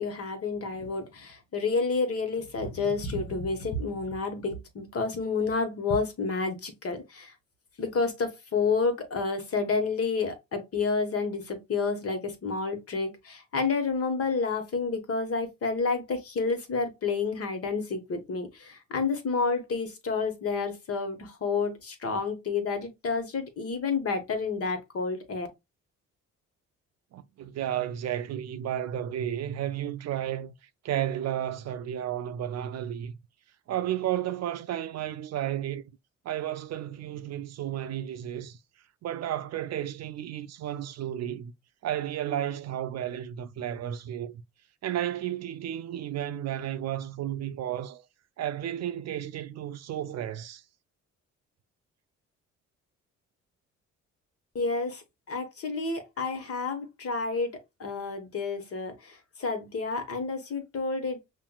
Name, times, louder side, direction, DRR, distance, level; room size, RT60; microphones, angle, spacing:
voice 1, 0.0-7.3 7.8-25.5 54.5-57.5 57.8-61.3, left 4 dB, 50° left, 1.3 m, -30 dB
voice 2, 27.1-30.5 30.8-33.2 33.7-35.8 36.2-38.6 39.0-41.5 41.8-44.4 44.8-48.0 48.4-50.6, right 11 dB, 60° right, 0.5 m, -32 dB
5.6 x 2.6 x 2.3 m
cardioid pair, 90°, 30 cm